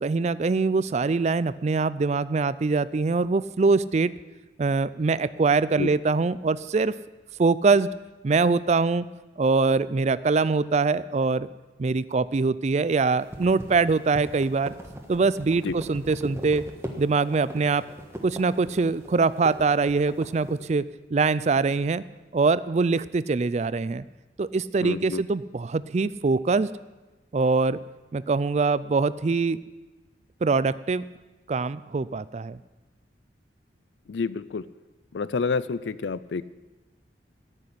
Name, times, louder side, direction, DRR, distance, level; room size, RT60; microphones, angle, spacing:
voice 1, 0.0-4.1 4.6-6.9 7.4-7.9 8.2-9.1 9.4-11.5 11.8-14.7 15.1-16.6 17.0-17.8 18.2-20.8 21.1-22.0 22.3-24.0 24.4-26.7 27.3-27.8 28.1-29.6 30.4-31.0 31.5-32.6, right 4 dB, 40° right, 17 dB, 0.4 m, -23 dB
sound 1, 13.2-20.6, equal, 15° right, 1.4 m, -39 dB
voice 2, 24.8-25.2 34.1-34.6 35.1-36.4, left 4 dB, 80° left, 17 dB, 0.4 m, -28 dB
14.0 x 6.6 x 9.9 m, 1.2 s
head